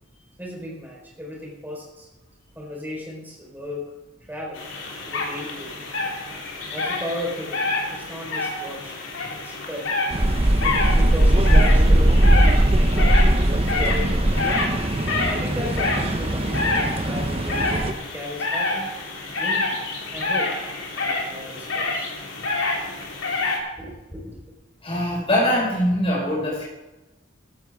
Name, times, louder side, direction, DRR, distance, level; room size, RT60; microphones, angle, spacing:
voice 1, 0.4-2.1 2.5-3.9 4.3-4.6 5.1-5.9 6.7-9.0 9.3-9.9 10.6-12.2 12.8-14.7 15.3-18.9 19.4-19.8 20.1-20.6 21.0-22.1 23.8-24.4, left 1 dB, 10° right, -1 dB, 4.4 m, -35 dB
sound 1, 4.5-23.6, left 3 dB, 70° left, 3.8 m, -28 dB
sound 2, 10.1-17.9, right 1 dB, 30° right, 0.9 m, -19 dB
voice 2, 24.8-26.6, left 1 dB, 30° left, -4 dB, 5.7 m, -22 dB
15.5 x 12.5 x 3.7 m, 1.1 s
head